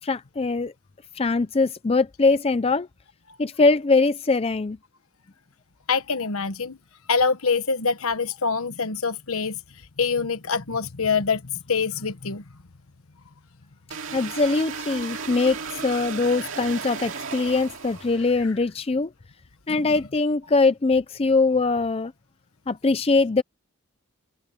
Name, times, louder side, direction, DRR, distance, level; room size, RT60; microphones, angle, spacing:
voice 1, 0.0-0.7 1.1-2.9 3.4-4.8 14.1-19.1 19.7-22.1 22.7-23.4, left 3 dB, 25° left, 0.4 m, -22 dB
voice 2, 5.9-6.8 7.1-9.6 10.0-12.4 19.8-19.9, left 5 dB, 70° left, 1.2 m, -25 dB
sound 1, 13.9-18.5, right 5 dB, 60° right, 2.3 m, -35 dB
head